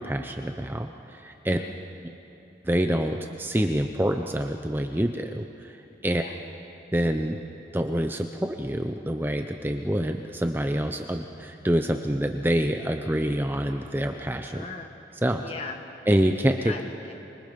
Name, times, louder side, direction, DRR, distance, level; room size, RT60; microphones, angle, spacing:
voice 1, 0.0-1.6 2.0-2.1 2.6-5.5 6.0-6.2 6.9-7.4 7.7-14.6 15.2-15.4 16.1-16.7, equal, 10° right, 5 dB, 0.6 m, -26 dB
voice 2, 1.5-1.8 6.1-6.3 14.5-14.9 15.4-15.8 16.6-17.1, left 4 dB, 35° left, 4 dB, 1.7 m, -39 dB
25.0 x 23.0 x 5.2 m, 2.8 s
head